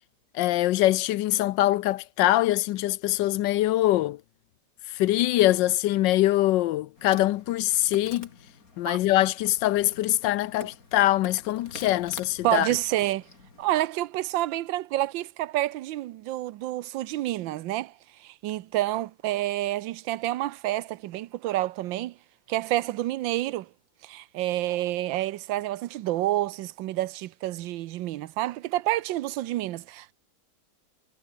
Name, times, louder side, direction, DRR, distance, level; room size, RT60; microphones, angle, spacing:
voice 1, 0.3-4.2 4.9-8.3 8.8-12.7, left 15 dB, 75° left, 1.3 m, -23 dB
Insect, 7.0-13.7, left 3 dB, 50° left, 3.9 m, -47 dB
voice 2, 12.4-13.2 13.6-17.9 18.2-22.1 22.5-23.7 24.0-30.1, right 15 dB, 85° right, 1.4 m, -28 dB
omnidirectional pair, 2.0 m